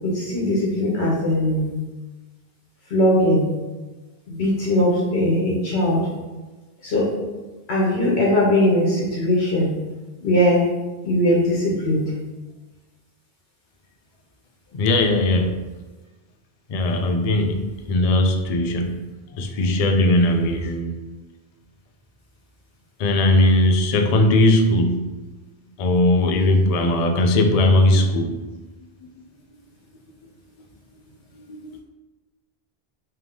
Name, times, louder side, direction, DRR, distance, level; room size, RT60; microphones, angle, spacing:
voice 1, 0.0-1.8 2.9-3.5 4.3-6.0 6.8-7.1 7.7-9.7 10.2-10.7 11.0-12.0, left 1 dB, 80° left, -4 dB, 1.1 m, -20 dB
voice 2, 14.7-15.6 16.7-19.0 19.3-21.1 23.0-25.1 25.8-28.4 31.5-31.8, left 1 dB, 55° left, 5 dB, 0.4 m, -19 dB
3.4 x 3.3 x 3.5 m, 1.2 s
omnidirectional pair, 1.1 m